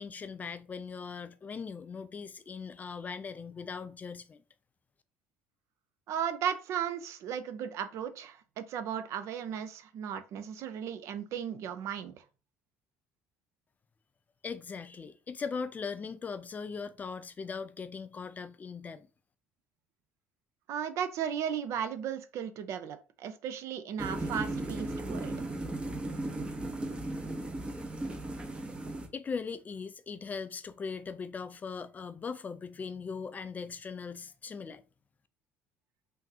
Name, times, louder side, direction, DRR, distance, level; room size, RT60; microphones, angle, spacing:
voice 1, 0.0-4.4 14.4-19.1 29.1-34.8, left 5 dB, 25° left, 0.3 m, -39 dB
voice 2, 6.1-12.1 20.7-25.3, right 8 dB, 50° right, 0.4 m, -35 dB
sound 1, 24.0-29.1, right 2 dB, 15° right, 0.7 m, -36 dB
3.6 x 2.6 x 2.7 m
figure-of-eight pair, 60°, 7 cm